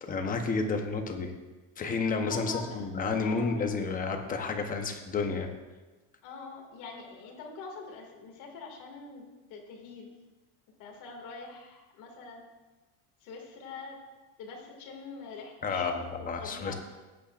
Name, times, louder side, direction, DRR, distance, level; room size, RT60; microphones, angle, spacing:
voice 1, 0.0-1.3 1.8-5.5 15.6-15.9 16.3-16.7, left 4 dB, 20° left, 5 dB, 0.9 m, -30 dB
voice 2, 2.1-2.8 3.2-3.8 6.2-10.1 10.8-12.4 13.2-14.0 14.4-16.7, left 4 dB, 50° left, 1 dB, 2.3 m, -44 dB
16.5 x 8.8 x 2.5 m, 1.2 s
cardioid pair, 160°, 39 cm